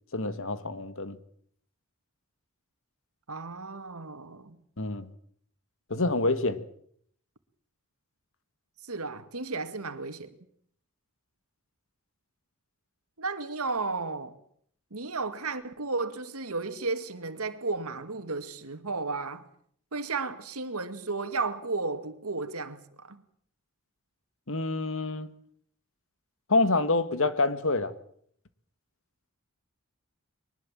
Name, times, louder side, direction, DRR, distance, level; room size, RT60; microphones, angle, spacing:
voice 1, 0.1-1.2 4.8-5.1 5.9-6.6 24.5-25.3 26.5-27.9, left 3 dB, 65° left, 1.8 m, -27 dB
voice 2, 3.3-4.6 8.8-10.4 13.2-14.3 14.9-19.4 19.9-23.2, right 3 dB, 80° right, 2.1 m, -33 dB
22.5 x 20.0 x 7.6 m
head